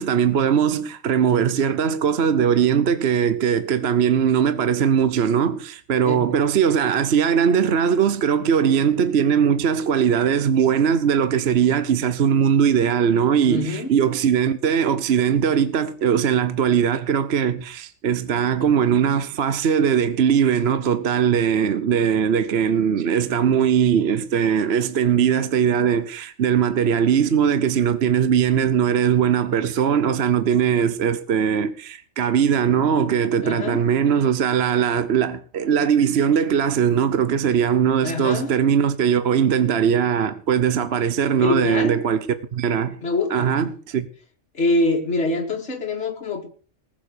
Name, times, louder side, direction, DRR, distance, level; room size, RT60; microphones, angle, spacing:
voice 1, 0.0-42.3 42.5-43.0 43.3-44.1, right 8 dB, 55° right, 1.0 m, -20 dB
voice 2, 13.4-13.9 33.4-33.8 38.0-38.5 41.4-42.0 43.0-43.5 44.5-46.5, left 2 dB, 55° left, 2.3 m, -24 dB
20.0 x 7.4 x 6.7 m
omnidirectional pair, 1.4 m